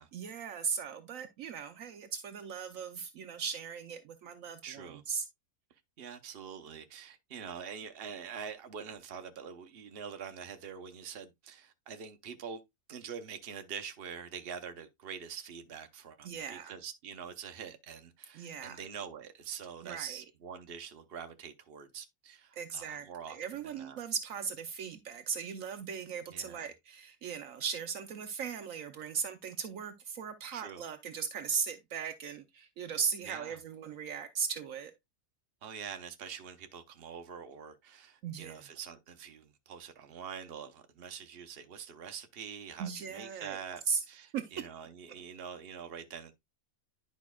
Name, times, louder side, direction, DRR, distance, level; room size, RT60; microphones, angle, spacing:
voice 1, 0.1-5.3 16.2-16.8 18.3-18.8 19.8-20.2 22.5-34.9 38.2-38.7 42.8-43.6 43.9-44.0 44.3-44.5, right 6 dB, 70° right, 1.1 m, -38 dB
voice 2, 4.6-5.0 6.0-12.6 12.9-24.0 26.3-26.7 30.5-30.8 33.2-33.6 35.6-43.8 44.1-46.3, right 7 dB, 45° right, 1.0 m, -45 dB
10.5 x 5.2 x 2.3 m
omnidirectional pair, 1.5 m